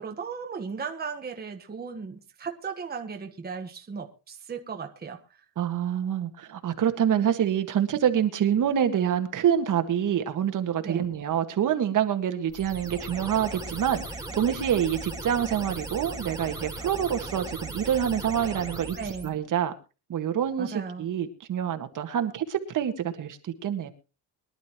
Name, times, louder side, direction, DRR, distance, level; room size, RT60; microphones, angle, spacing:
voice 1, 0.0-5.4 10.8-11.1 19.0-19.3 20.6-21.1, right 5 dB, 25° right, 1.4 m, -36 dB
voice 2, 5.6-19.0 19.2-19.7 20.1-23.9, right 9 dB, 55° right, 1.8 m, -26 dB
sound 1, 12.5-19.3, right 2 dB, 10° right, 2.7 m, -37 dB
23.0 x 11.5 x 3.0 m
cardioid pair, 130°, 38 cm